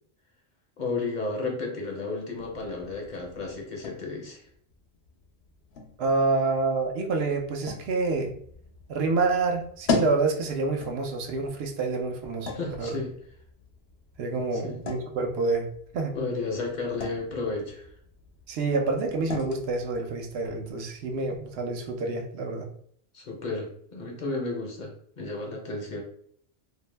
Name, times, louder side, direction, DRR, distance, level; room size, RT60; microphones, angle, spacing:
voice 1, 0.8-4.4 12.5-13.1 14.5-14.8 16.1-17.9 23.1-26.0, left 3 dB, 55° left, 0 dB, 0.7 m, -33 dB
sound 1, 2.4-21.9, left 3 dB, 85° left, 0.9 m, -39 dB
voice 2, 6.0-8.4 8.9-12.5 12.8-13.0 14.2-16.2 18.5-22.7, right 3 dB, 80° right, 3 dB, 0.8 m, -27 dB
2.6 x 2.1 x 3.2 m, 0.64 s
omnidirectional pair, 1.0 m